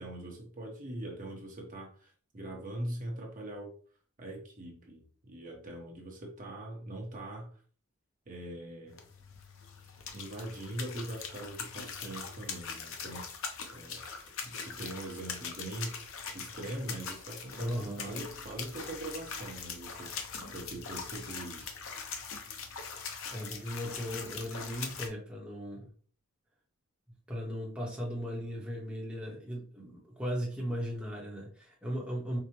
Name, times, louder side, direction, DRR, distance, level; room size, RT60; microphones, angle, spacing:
voice 1, 0.0-3.7 4.2-7.5 8.3-9.0 10.1-14.0 14.4-20.1 20.5-21.8, right 1 dB, 40° right, 0 dB, 0.8 m, -42 dB
sound 1, 8.9-25.1, left 5 dB, 65° left, 0.6 m, -42 dB
voice 2, 17.6-18.2 23.0-25.9 27.3-32.4, equal, 5° right, -3 dB, 0.8 m, -37 dB
4.6 x 2.1 x 2.8 m, 0.43 s
head